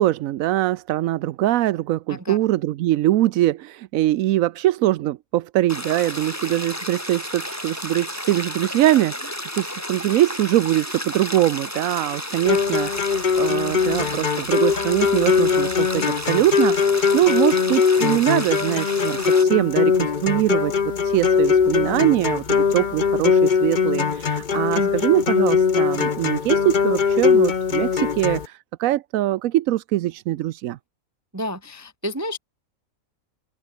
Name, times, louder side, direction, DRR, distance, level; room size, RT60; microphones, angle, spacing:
voice 1, 0.0-20.7 21.0-30.8, right 14 dB, 75° right, 1.0 m, -22 dB
sound 1, 5.7-19.4, equal, 10° left, 6.2 m, -32 dB
sound 2, 12.5-28.5, left 6 dB, 35° left, 1.0 m, -21 dB
voice 2, 24.7-25.0 31.3-32.4, equal, 15° right, 0.8 m, -30 dB
open air
omnidirectional pair, 1.5 m